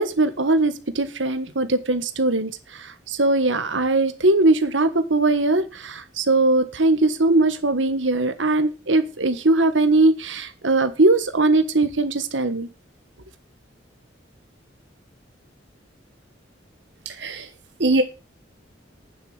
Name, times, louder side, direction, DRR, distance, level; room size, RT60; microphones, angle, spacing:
voice 1, 0.0-12.7, right 2 dB, 85° right, 1.5 m, -20 dB
voice 2, 17.0-17.5 17.8-18.0, right 2 dB, 65° right, 1.2 m, -21 dB
9.6 x 7.5 x 7.3 m
head